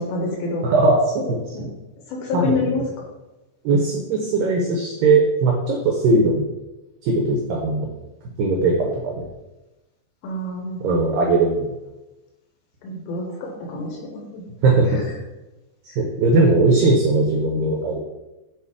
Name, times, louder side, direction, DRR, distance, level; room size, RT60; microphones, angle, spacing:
voice 1, 0.0-0.7 2.1-2.8 3.7-3.8 10.2-10.9 12.8-14.5 14.8-15.0 15.9-16.0 16.3-16.6, left 3 dB, 85° left, -1 dB, 3.2 m, -27 dB
voice 2, 0.6-1.7 2.3-2.8 3.6-6.4 7.0-7.9 8.4-9.3 10.8-11.8 14.6-15.0 16.0-18.0, right 3 dB, 85° right, 0 dB, 2.0 m, -19 dB
7.9 x 2.8 x 4.7 m, 1.1 s
omnidirectional pair, 5.0 m